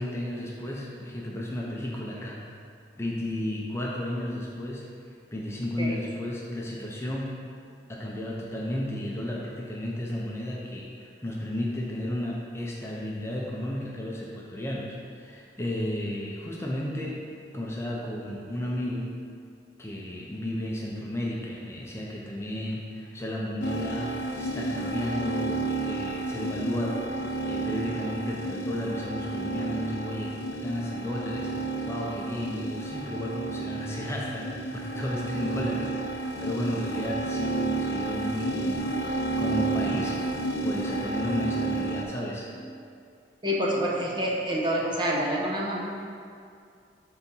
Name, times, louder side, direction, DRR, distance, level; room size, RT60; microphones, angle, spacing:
voice 1, 0.0-2.4 3.0-4.9 5.3-7.3 7.9-17.2 17.5-19.1 19.8-24.1 24.4-40.2 40.6-42.5, left 1 dB, 15° left, -4 dB, 0.6 m, -33 dB
sound 1, 23.6-42.0, right 2 dB, 70° left, 0.8 m, -31 dB
voice 2, 43.4-45.8, equal, 25° right, -3 dB, 0.9 m, -27 dB
6.8 x 4.0 x 5.5 m, 2.4 s
head